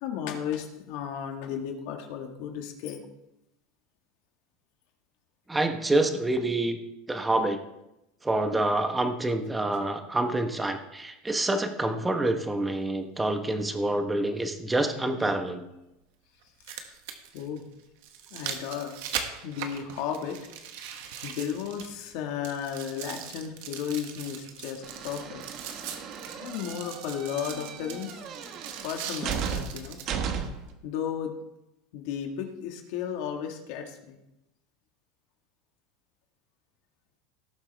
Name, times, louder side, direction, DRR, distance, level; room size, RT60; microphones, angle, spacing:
voice 1, 0.0-3.0 16.7-16.9 17.3-17.6 18.3-19.0 19.4-20.4 21.2-25.4 26.3-28.3 28.8-30.0 30.8-31.3 31.9-34.2, left 8 dB, 65° left, 3 dB, 1.8 m, -34 dB
voice 2, 5.5-6.8 7.1-7.6 8.2-15.6, right 2 dB, 10° right, 7 dB, 1.1 m, -27 dB
sound 1, 13.2-13.3 15.2-15.3 16.4-22.1 22.4-30.1 30.7-30.8, right 8 dB, 70° right, 1.4 m, -40 dB
sound 2, 24.8-30.7, right 7 dB, 45° right, 1.2 m, -36 dB
18.0 x 7.2 x 3.5 m, 0.91 s
supercardioid pair, 140°, 0 cm